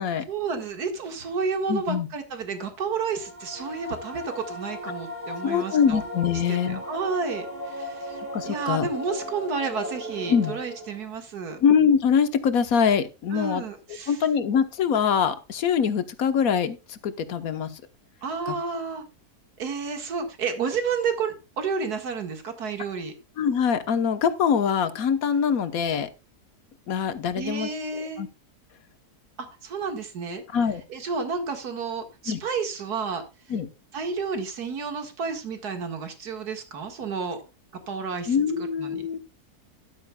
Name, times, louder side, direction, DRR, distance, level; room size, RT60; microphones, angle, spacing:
voice 1, 0.3-6.0 6.5-11.6 13.3-14.2 18.2-19.0 19.6-23.1 27.3-28.2 29.4-30.4 30.9-33.2 33.9-37.4 37.9-38.4 38.8-39.0, right 5 dB, 75° right, 5 dB, 2.3 m, -31 dB
voice 2, 1.7-2.1 5.4-6.8 8.3-8.9 10.3-10.5 11.6-13.6 14.1-17.7 18.5-18.6 23.4-26.1 26.9-28.3 30.5-30.8 32.3-32.4 33.5-33.7 38.3-39.2, left 7 dB, 65° left, 10 dB, 1.5 m, -23 dB
sound 1, 3.0-11.1, left 1 dB, 35° right, 6.2 m, -37 dB
13.0 x 11.5 x 2.3 m, 0.27 s
omnidirectional pair, 1.7 m